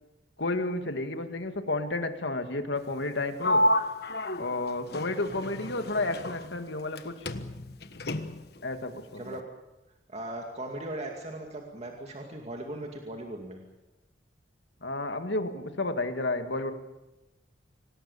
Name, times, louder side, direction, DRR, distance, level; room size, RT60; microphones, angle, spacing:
voice 1, 0.4-3.6 4.4-7.3 8.6-9.4 14.8-16.7, left 2 dB, 70° left, 7 dB, 2.2 m, -31 dB
Sliding door, 3.4-7.0 7.3-8.6, left 1 dB, 55° left, 1.4 m, -30 dB
voice 2, 9.1-9.5 10.1-13.6, right 1 dB, 35° right, 2 dB, 2.4 m, -38 dB
26.5 x 18.5 x 8.5 m, 0.98 s
head